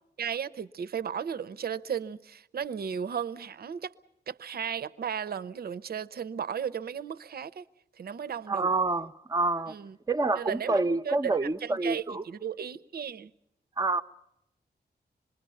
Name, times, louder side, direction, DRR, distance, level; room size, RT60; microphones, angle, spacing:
voice 1, 0.2-3.9 4.3-7.6 8.0-8.7 9.7-10.0 10.4-10.8 11.0-11.4 11.6-13.3, right 7 dB, 60° right, 0.7 m, -35 dB
voice 2, 8.5-9.7 10.1-12.2 13.8-14.0, right 3 dB, 20° right, 0.8 m, -27 dB
26.0 x 21.0 x 5.6 m
wide cardioid pair, 120°, 18 cm